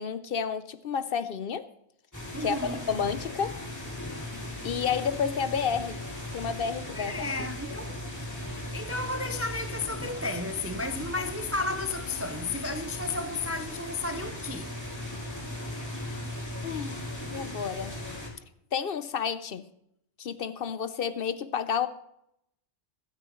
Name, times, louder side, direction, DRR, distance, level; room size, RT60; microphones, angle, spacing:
voice 1, 0.0-1.7 2.4-3.6 4.6-6.0 6.3-7.3 15.8-16.2 16.6-18.0 18.7-19.7 20.2-21.9, left 7 dB, 60° left, 0.8 m, -31 dB
sound 1, 2.1-18.3, left 1 dB, 15° left, 2.5 m, -38 dB
voice 2, 2.3-2.9 6.9-8.1 8.5-14.8, left 2 dB, 25° right, 0.3 m, -33 dB
24.5 x 9.2 x 3.1 m
omnidirectional pair, 1.2 m